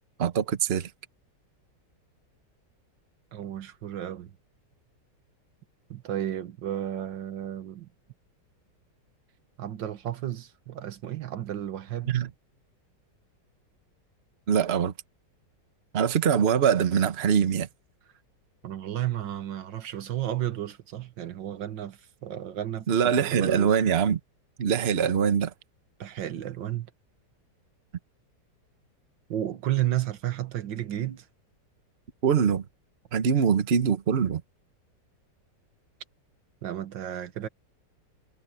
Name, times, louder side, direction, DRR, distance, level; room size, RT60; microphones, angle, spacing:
voice 1, 0.2-0.9 12.1-12.3 14.5-14.9 15.9-17.7 22.9-24.2 24.6-25.5 32.2-32.6 33.1-34.4, right 7 dB, 40° right, 1.2 m, -23 dB
voice 2, 3.3-4.3 5.9-7.9 9.6-12.2 18.6-23.8 26.0-26.9 29.3-31.3 36.6-37.5, right 12 dB, 85° right, 1.9 m, -32 dB
omnidirectional pair, 1.9 m